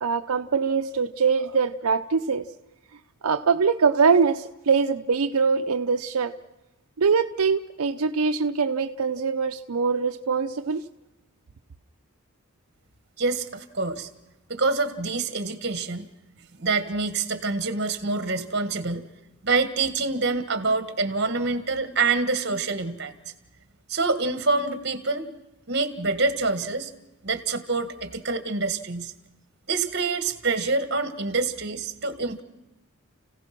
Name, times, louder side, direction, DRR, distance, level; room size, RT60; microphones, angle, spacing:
voice 1, 0.0-2.5 3.2-6.3 7.0-10.8, right 5 dB, 90° right, 0.6 m, -23 dB
voice 2, 13.2-14.1 14.5-16.1 16.5-19.0 19.4-23.1 23.9-25.3 25.7-26.9 27.2-29.1 29.7-32.4, right 3 dB, 50° right, 1.7 m, -26 dB
30.0 x 16.5 x 6.0 m
head